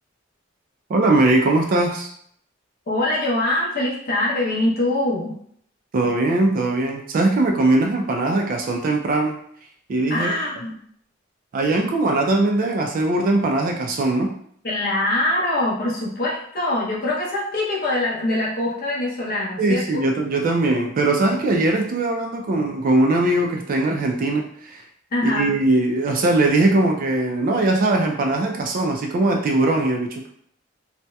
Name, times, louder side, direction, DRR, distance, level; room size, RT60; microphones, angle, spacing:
voice 1, 0.9-2.1 5.9-9.4 9.9-10.3 11.5-14.3 19.6-24.8 25.2-30.3, right 2 dB, 45° right, 2 dB, 0.3 m, -20 dB
voice 2, 2.9-5.4 10.1-10.7 14.6-20.0 25.1-25.5, left 1 dB, 50° left, -5 dB, 0.7 m, -23 dB
2.7 x 2.0 x 2.2 m, 0.64 s
head